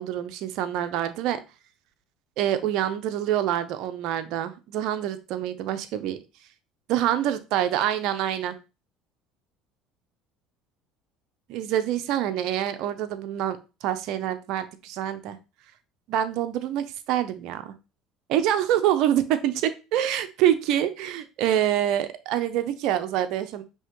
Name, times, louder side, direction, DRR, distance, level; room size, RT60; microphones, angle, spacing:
voice 1, 0.0-1.4 2.4-6.2 6.9-8.6 11.5-15.4 16.1-17.7 18.3-23.6, right 11 dB, 70° right, 10 dB, 0.5 m, -26 dB
5.5 x 2.9 x 3.0 m, 0.29 s
supercardioid pair, 90°, 0 cm